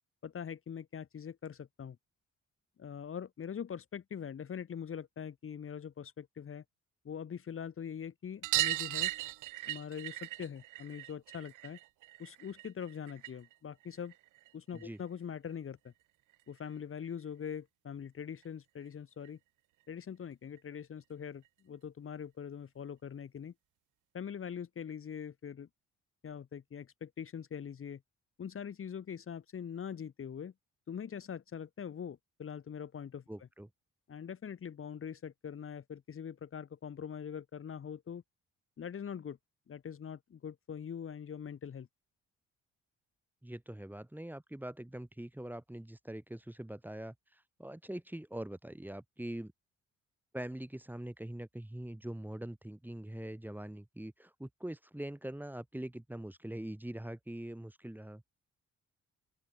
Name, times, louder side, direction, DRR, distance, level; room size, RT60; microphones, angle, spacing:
voice 1, 0.2-2.0 2.8-6.6 7.1-9.1 9.7-11.8 12.2-14.1 14.5-15.9 16.5-19.4 19.9-23.5 24.1-25.7 26.2-28.0 28.4-30.5 30.9-33.2 34.1-38.2 38.8-39.4 39.7-41.9, left 7 dB, 45° left, 1.8 m, -43 dB
sound 1, 8.4-13.5 13.8-15.0 16.3-16.4 16.6-16.7 17.0-17.1 18.4-18.5 18.8-18.9 19.2-19.3 20.6-20.7 21.4-21.5, right 17 dB, 85° right, 0.7 m, -37 dB
voice 2, 33.3-33.7 43.4-49.5 50.3-58.2, right 1 dB, 5° right, 2.8 m, -43 dB
open air
cardioid pair, 90°, 30 cm